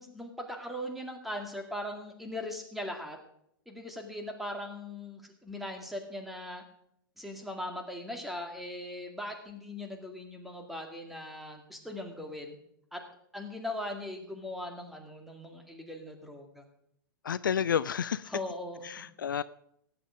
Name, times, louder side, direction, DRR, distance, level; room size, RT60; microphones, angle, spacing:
voice 1, 0.0-3.2 3.7-6.6 7.2-12.6 12.9-13.0 13.3-16.6 18.3-19.1, left 1 dB, ahead, 3 dB, 2.1 m, -39 dB
voice 2, 17.2-18.3 18.8-19.4, left 8 dB, 65° left, 17 dB, 0.4 m, -30 dB
17.5 x 8.7 x 5.0 m, 0.73 s
figure-of-eight pair, 105°, 12 cm